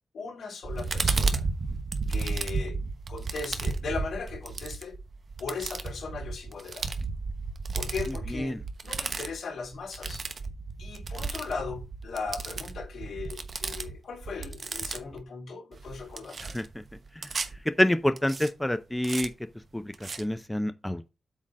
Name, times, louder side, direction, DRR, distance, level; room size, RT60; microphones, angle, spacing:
voice 1, 0.1-1.4 2.1-2.8 3.1-5.0 5.4-6.9 7.7-10.2 10.8-16.4, left 4 dB, 90° left, 4.0 m, -38 dB
sound 1, 0.6-15.2 15.7-17.6 18.2-18.5 19.0-19.3 19.9-20.2, right 4 dB, 50° right, 1.1 m, -33 dB
voice 2, 17.8-19.3 19.7-19.8 20.2-21.2, left 1 dB, 10° left, 0.6 m, -26 dB
8.3 x 3.8 x 6.3 m
wide cardioid pair, 105°, 0 cm